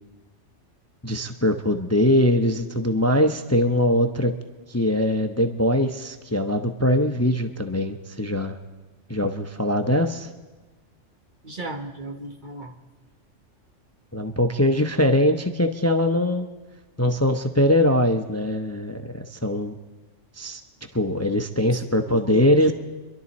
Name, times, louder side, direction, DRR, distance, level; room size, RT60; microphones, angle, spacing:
voice 1, 1.0-4.3 4.7-8.6 9.1-10.3 14.1-16.5 17.0-19.8 20.4-20.6 20.9-22.7, left 1 dB, 15° left, 6 dB, 0.5 m, -22 dB
voice 2, 11.4-12.7 21.6-21.8 22.1-22.7, right 1 dB, 45° right, 4 dB, 1.1 m, -36 dB
28.0 x 12.0 x 4.2 m, 1.2 s
omnidirectional pair, 1.3 m